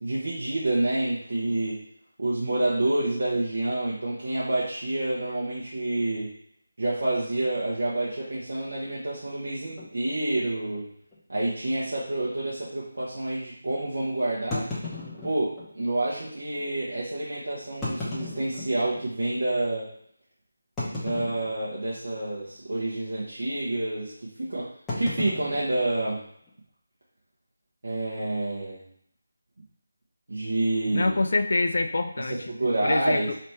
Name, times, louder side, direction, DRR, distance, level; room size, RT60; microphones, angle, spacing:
voice 1, 0.0-1.8 2.2-6.3 6.8-10.9 11.3-14.7 15.2-19.9 20.9-24.7 25.0-26.2 27.8-28.8 30.3-31.1 32.3-33.3, right 2 dB, 60° right, -7 dB, 1.2 m, -28 dB
sound 1, 9.8-9.9 10.7-10.8 11.1-11.2 11.8-11.9 14.5-15.7 16.5-16.6 17.7-19.1 19.6-19.7 20.8-21.9 22.1-22.5 22.7-23.1 24.9-26.5, left 2 dB, 5° left, 0.9 m, -35 dB
voice 2, 30.9-32.4 32.8-33.3, left 2 dB, 55° left, 7 dB, 0.5 m, -25 dB
3.3 x 3.2 x 4.3 m, 0.68 s
figure-of-eight pair, 160°, 0 cm